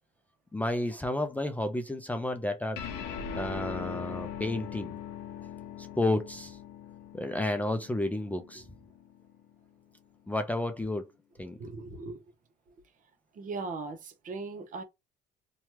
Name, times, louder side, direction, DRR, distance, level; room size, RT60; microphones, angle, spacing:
voice 1, 0.5-2.8 3.3-5.0 5.8-6.6 7.1-8.6 10.3-11.1 11.4-11.6, left 1 dB, 10° left, 0.5 m, -31 dB
sound 1, 2.8-9.5, left 7 dB, 85° left, 0.7 m, -41 dB
voice 2, 11.6-12.2 13.3-14.8, right 3 dB, 50° right, 0.9 m, -38 dB
2.9 x 2.3 x 3.0 m
cardioid pair, 110°, 17 cm